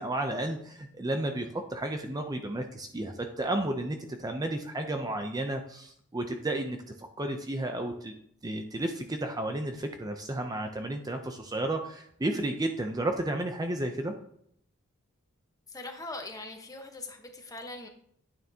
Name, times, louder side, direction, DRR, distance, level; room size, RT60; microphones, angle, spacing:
voice 1, 0.0-8.1 8.4-14.1, right 1 dB, 20° right, 5 dB, 0.6 m, -32 dB
voice 2, 15.7-17.9, left 2 dB, 15° left, 4 dB, 1.1 m, -41 dB
9.4 x 9.3 x 2.8 m, 0.69 s
head